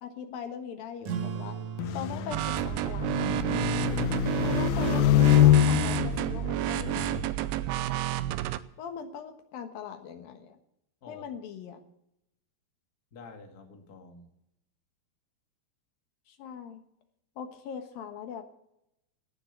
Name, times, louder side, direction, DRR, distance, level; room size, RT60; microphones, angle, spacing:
voice 1, 0.0-1.6 1.9-3.4 4.4-7.0 8.8-10.6 11.1-11.8 16.3-16.8 17.4-18.4, left 7 dB, 70° left, 7 dB, 3.0 m, -41 dB
sound 1, 1.0-6.1, right 7 dB, 55° right, 2.5 m, -41 dB
sound 2, 1.8-7.3, left 13 dB, 90° left, 1.7 m, -25 dB
sound 3, 2.3-8.6, right 14 dB, 85° right, 2.6 m, -30 dB
voice 2, 4.4-4.8 11.0-11.2 13.1-14.3, left 4 dB, 35° left, 4 dB, 1.7 m, -48 dB
17.5 x 7.2 x 10.0 m, 0.81 s
omnidirectional pair, 4.4 m